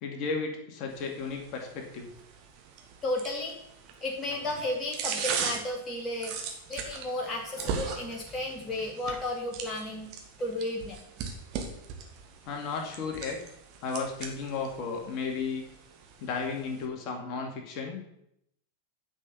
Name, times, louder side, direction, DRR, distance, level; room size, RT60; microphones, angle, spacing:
voice 1, 0.0-2.1 12.5-13.4 13.8-15.6 16.2-18.0, left 5 dB, 40° left, 2 dB, 2.3 m, -34 dB
sound 1, 0.9-16.9, right 6 dB, 40° right, 1.9 m, -39 dB
voice 2, 3.0-3.6 4.0-10.1 10.4-11.0, left 1 dB, 20° left, 0 dB, 2.1 m, -33 dB
9.7 x 5.8 x 7.0 m, 0.76 s
figure-of-eight pair, 90°, 0 cm